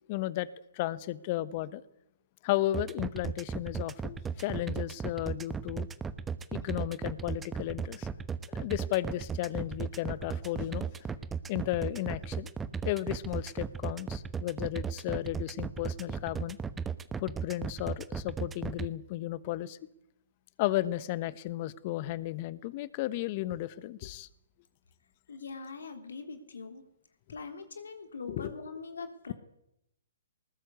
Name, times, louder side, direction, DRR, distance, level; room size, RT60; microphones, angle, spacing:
voice 1, 0.1-0.5 0.7-1.8 2.4-5.9 6.5-8.1 8.5-10.9 11.5-12.5 12.8-16.6 17.2-19.8 20.6-24.3 28.3-28.5, left 15 dB, 40° left, 1.2 m, -34 dB
sound 1, 2.7-18.9, right 6 dB, 10° right, 1.0 m, -35 dB
voice 2, 25.3-26.9 27.3-29.3, left 4 dB, 75° left, 3.4 m, -42 dB
20.0 x 19.5 x 8.4 m
hypercardioid pair, 130°, 0 cm